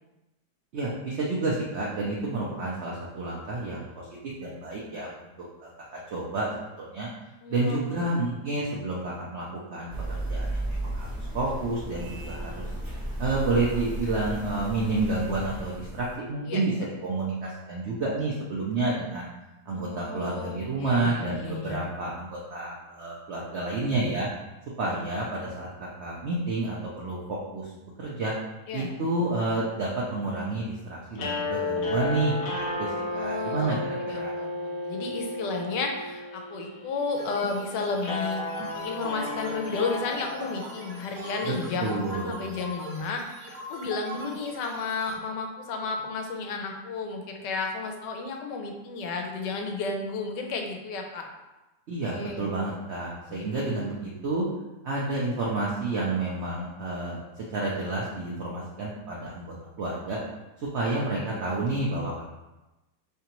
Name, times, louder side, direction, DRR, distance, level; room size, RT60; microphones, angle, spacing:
voice 1, 0.7-4.1 4.4-5.3 5.6-7.1 7.5-9.4 9.7-11.1 11.3-12.7 13.2-19.3 19.7-24.3 24.8-27.7 28.0-28.3 28.7-34.3 41.8-42.3 51.9-54.4 54.8-60.2 60.7-62.3, right 2 dB, 65° right, -4 dB, 0.7 m, -30 dB
voice 2, 7.4-8.1 16.5-16.6 19.7-21.8 28.7-28.9 33.1-33.8 34.0-38.4 38.7-51.3 52.1-53.5, left 4 dB, 90° left, 3 dB, 1.2 m, -33 dB
sound 1, 9.9-16.2, right 1 dB, 20° right, 0.6 m, -34 dB
sound 2, 31.1-41.4, left 2 dB, 65° left, 0.9 m, -33 dB
sound 3, 37.2-45.1, right 1 dB, 85° right, 1.4 m, -41 dB
3.8 x 3.3 x 2.9 m, 1.0 s
omnidirectional pair, 1.8 m